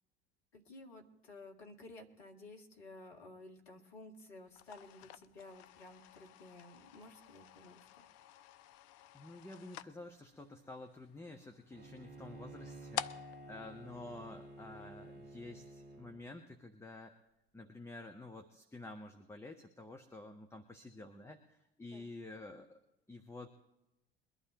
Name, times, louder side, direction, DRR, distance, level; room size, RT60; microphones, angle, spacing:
voice 1, 0.5-7.9 21.9-22.1, left 2 dB, 70° left, 2 dB, 1.9 m, -54 dB
sound 1, 4.5-14.9, left 12 dB, 50° left, 0.6 m, -49 dB
voice 2, 9.1-17.1 17.5-22.8 23.1-23.5, left 2 dB, 10° left, 4 dB, 1.1 m, -50 dB
Bowed string instrument, 11.7-16.2, right 2 dB, 30° right, 2.2 m, -52 dB
22.5 x 11.5 x 3.0 m, 0.90 s
figure-of-eight pair, 65°, 32 cm